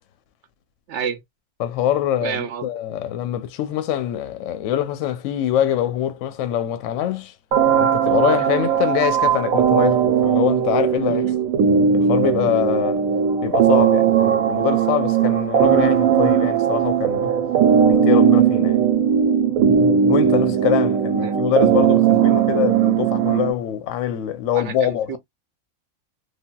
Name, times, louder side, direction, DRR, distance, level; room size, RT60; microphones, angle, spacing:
voice 1, 0.9-1.2 2.2-2.7 11.1-11.4 21.2-21.4 24.5-25.2, right 7 dB, 65° right, 0.7 m, -29 dB
voice 2, 1.6-7.3 7.8-11.3 11.9-13.0 13.4-17.4 17.9-18.8 20.1-25.2, left 10 dB, 70° left, 0.9 m, -24 dB
sound 1, 7.5-23.5, right 8 dB, 85° right, 1.1 m, -18 dB
3.4 x 2.3 x 2.2 m
omnidirectional pair, 1.5 m